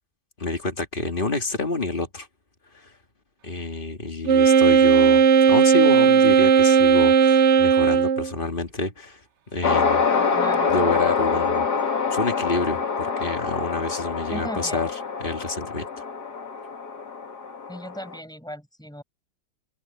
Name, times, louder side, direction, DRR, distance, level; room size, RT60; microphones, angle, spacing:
voice 1, 0.4-2.3 2.7-2.9 3.4-9.2 9.5-10.1 10.7-11.7 12.1-14.9 15.2-15.9, left 3 dB, 25° left, 2.0 m, -28 dB
Wind instrument woodwind instrument, 4.3-8.3, right 7 dB, 85° right, 0.6 m, -16 dB
sound 1, 9.6-18.2, left 5 dB, 50° left, 2.6 m, -25 dB
voice 2, 10.1-10.7 14.3-14.8 17.7-19.0, equal, ahead, 6.0 m, -37 dB
omnidirectional pair, 2.3 m